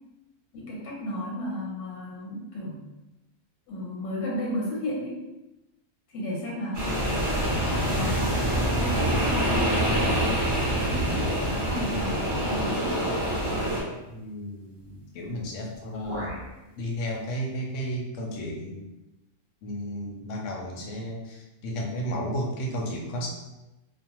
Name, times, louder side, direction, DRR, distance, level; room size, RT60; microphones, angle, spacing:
voice 1, 0.5-2.8 3.7-5.2 6.1-7.0 7.6-11.1 11.3-13.0, left 1 dB, 85° left, -3 dB, 1.3 m, -34 dB
sound 1, 6.7-13.8, right 1 dB, 40° right, 0.3 m, -25 dB
sound 2, 11.0-11.8 12.7-12.8 13.4-13.8 15.2-15.5 15.7-16.5, right 1 dB, 20° right, 0.9 m, -38 dB
voice 2, 14.1-16.3 16.8-18.9 19.6-23.3, equal, 65° left, 0 dB, 0.8 m, -33 dB
2.5 x 2.0 x 2.9 m, 0.98 s
omnidirectional pair, 1.5 m